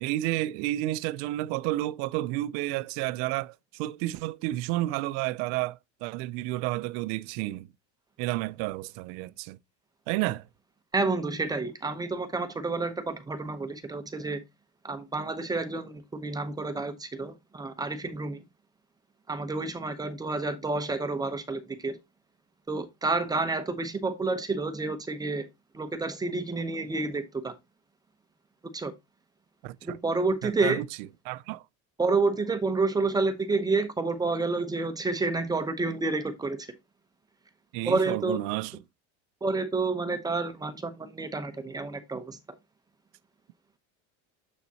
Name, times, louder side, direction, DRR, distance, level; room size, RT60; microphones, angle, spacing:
voice 1, 0.0-7.7 8.2-9.6 10.1-10.5 29.6-30.0 30.4-30.9 31.2-31.6 37.7-38.8, right 17 dB, 65° right, 0.5 m, -31 dB
voice 2, 10.9-14.4 14.8-18.4 19.3-22.0 22.7-25.5 25.7-27.5 28.7-28.9 29.8-30.8 32.0-36.7 37.8-38.4 39.4-42.6, right 3 dB, 10° right, 0.8 m, -29 dB
7.3 x 6.8 x 2.8 m
cardioid pair, 155°, 34 cm